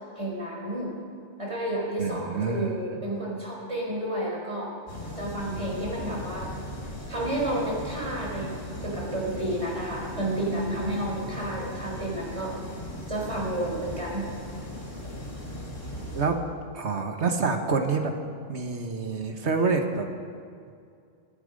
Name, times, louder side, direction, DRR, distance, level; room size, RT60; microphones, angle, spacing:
voice 1, 0.2-0.9 1.4-4.7 5.2-6.5 7.1-12.6 13.1-14.3, right 1 dB, 25° right, -4 dB, 4.5 m, -31 dB
voice 2, 2.0-2.8 16.1-16.4 16.7-18.1 18.5-20.1, right 4 dB, 65° right, 5 dB, 1.6 m, -27 dB
sound 1, 4.9-16.3, left 1 dB, 85° left, 4.2 m, -38 dB
26.5 x 9.2 x 5.3 m, 2.3 s
omnidirectional pair, 1.3 m